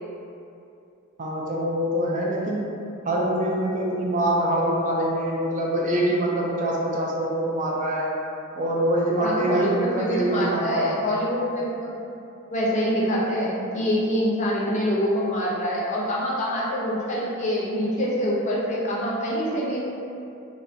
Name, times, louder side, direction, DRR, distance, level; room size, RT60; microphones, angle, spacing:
voice 1, 1.2-2.7 3.1-8.1 8.6-11.0, right 1 dB, 35° right, -3 dB, 0.3 m, -24 dB
voice 2, 9.2-12.0 12.5-19.8, equal, 35° left, -5 dB, 0.4 m, -25 dB
3.3 x 2.0 x 2.5 m, 2.7 s
head